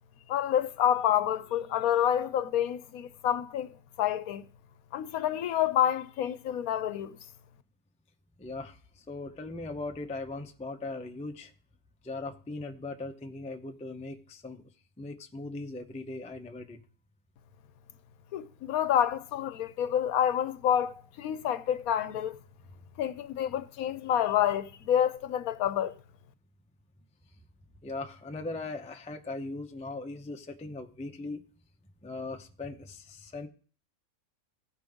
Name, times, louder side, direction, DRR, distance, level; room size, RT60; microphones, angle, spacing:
voice 1, 0.3-3.7 4.0-4.5 4.9-7.2 18.3-22.4 23.0-25.9, left 10 dB, 75° left, 1.1 m, -28 dB
voice 2, 8.4-11.5 12.0-14.6 15.0-16.8 27.8-31.4 32.0-33.5, left 2 dB, 10° left, 0.3 m, -39 dB
15.5 x 5.3 x 3.5 m
omnidirectional pair, 1.6 m